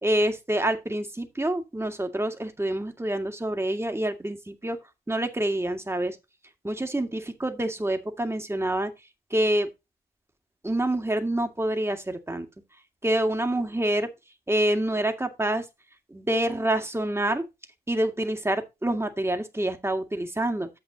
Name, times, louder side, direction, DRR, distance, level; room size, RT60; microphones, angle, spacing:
voice 1, 0.0-4.8 5.1-6.2 6.6-8.9 9.3-9.7 10.6-12.5 13.0-14.1 14.5-15.7 16.1-17.4 17.9-20.7, right 1 dB, 15° right, 2.0 m, -27 dB
10.5 x 7.9 x 2.9 m
hypercardioid pair, 40°, 20 cm